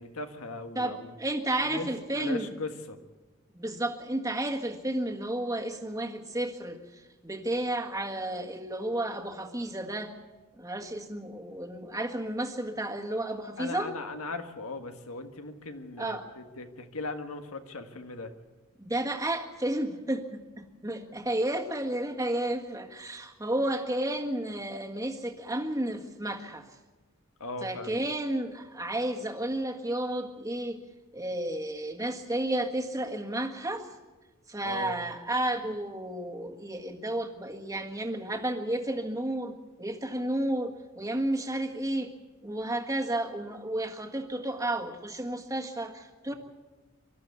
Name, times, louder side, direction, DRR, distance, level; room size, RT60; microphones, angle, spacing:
voice 1, 0.0-1.2 1.6-1.9 2.2-3.0 13.6-18.3 27.4-28.0 34.6-35.0 46.3-46.4, left 2 dB, 90° left, 7 dB, 1.6 m, -38 dB
voice 2, 0.8-2.5 3.5-10.1 10.6-13.9 16.0-16.2 18.8-26.6 27.6-30.8 31.1-33.9 34.5-42.1 42.4-46.3, right 1 dB, 15° right, 3 dB, 1.6 m, -32 dB
24.0 x 13.0 x 8.2 m, 1.2 s
head